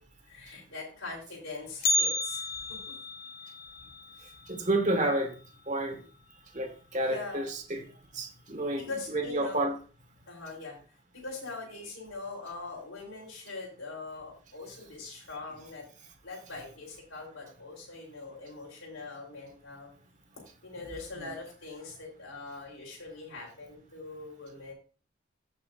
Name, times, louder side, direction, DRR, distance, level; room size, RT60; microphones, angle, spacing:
voice 1, 0.2-2.8 5.9-6.0 7.0-7.5 8.7-9.7 10.3-10.8 11.1-15.9 16.2-19.9 20.6-24.7, left 3 dB, 70° left, 3.7 m, -42 dB
Bell, 1.8-5.9 6.2-6.3 6.8-6.9 7.7-7.8 8.5-8.8 9.2-9.3, left 2 dB, 45° left, 0.8 m, -33 dB
voice 2, 4.5-5.3 5.7-6.0 6.5-7.8 8.1-8.9 9.1-9.7, right 1 dB, 35° right, 1.6 m, -29 dB
15.5 x 5.5 x 2.5 m
head